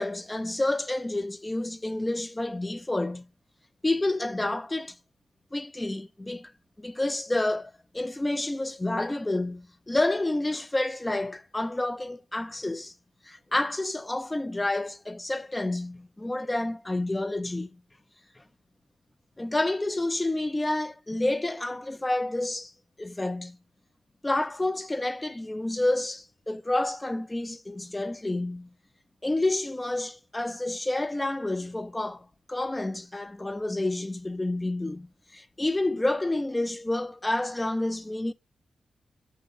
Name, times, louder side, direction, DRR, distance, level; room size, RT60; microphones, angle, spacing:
voice 1, 0.0-3.2 3.8-5.0 5.5-6.5 6.8-12.9 13.2-17.7 18.4-18.5 19.4-22.7 23.0-23.6 24.2-28.7 29.2-35.1 35.3-38.3, left 2 dB, 15° left, 0.3 m, -29 dB
6.3 x 2.9 x 5.6 m
cardioid pair, 85°, 0 cm